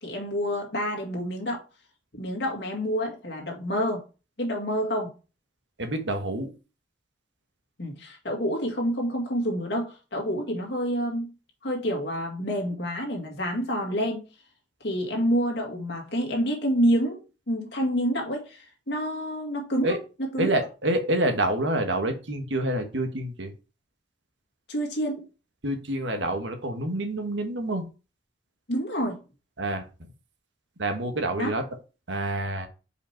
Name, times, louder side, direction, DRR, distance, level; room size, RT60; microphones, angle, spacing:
voice 1, 0.0-1.6 2.1-4.0 4.4-5.1 7.8-11.3 11.6-14.2 14.8-20.0 20.3-20.5 24.7-25.3 28.7-29.2 31.4-31.6, equal, 65° left, 2.1 m, -28 dB
voice 2, 5.8-6.5 19.8-20.0 20.4-23.5 25.6-27.8 29.6-29.9 30.8-31.6 32.1-32.7, right 1 dB, 80° right, 1.4 m, -27 dB
5.1 x 5.1 x 4.4 m
head